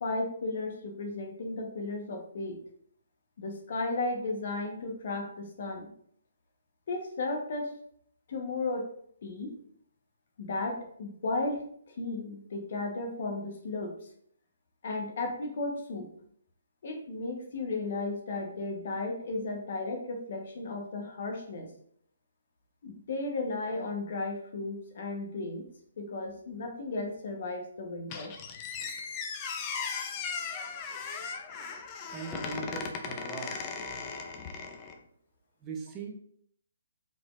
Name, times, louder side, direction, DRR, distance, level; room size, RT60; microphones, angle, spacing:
voice 1, 0.0-2.6 3.4-5.9 6.9-7.7 8.3-8.9 9.2-9.5 10.4-11.6 11.9-13.9 14.8-16.1 16.8-21.7 22.8-25.7 26.0-28.3 33.5-33.6, left 2 dB, 50° left, 3 dB, 1.0 m, -34 dB
Squeak, 28.1-35.0, left 5 dB, 25° left, 0.5 m, -37 dB
voice 2, 32.1-33.6 35.6-36.1, right 5 dB, 20° right, 0 dB, 0.7 m, -40 dB
4.8 x 3.9 x 2.4 m, 0.65 s
figure-of-eight pair, 135°, 0 cm